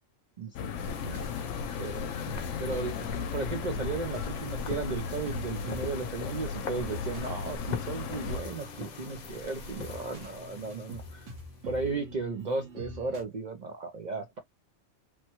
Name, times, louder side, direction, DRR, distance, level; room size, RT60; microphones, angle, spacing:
voice 1, 0.4-1.2 1.8-2.3 2.6-11.3 11.7-14.4, right 4 dB, 50° right, 0.5 m, -35 dB
sound 1, 0.5-8.4, left 6 dB, 80° left, 0.9 m, -36 dB
sound 2, 0.8-11.8, left 5 dB, 45° left, 0.6 m, -43 dB
sound 3, 3.7-13.2, left 1 dB, 80° right, 1.4 m, -46 dB
3.2 x 2.1 x 2.8 m
omnidirectional pair, 1.3 m